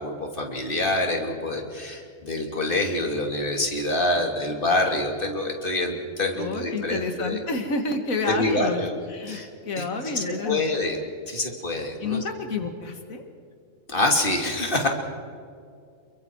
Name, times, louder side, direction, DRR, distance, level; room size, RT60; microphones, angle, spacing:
voice 1, 0.0-7.4 8.3-8.9 9.3-9.5 9.8-9.9 10.4-11.0 11.3-12.2 13.9-14.9, left 2 dB, 40° left, 2 dB, 3.0 m, -26 dB
voice 2, 6.3-8.8 9.1-10.6 12.0-13.2, left 3 dB, 85° left, 5 dB, 2.2 m, -29 dB
28.5 x 23.5 x 4.7 m, 2.4 s
omnidirectional pair, 1.4 m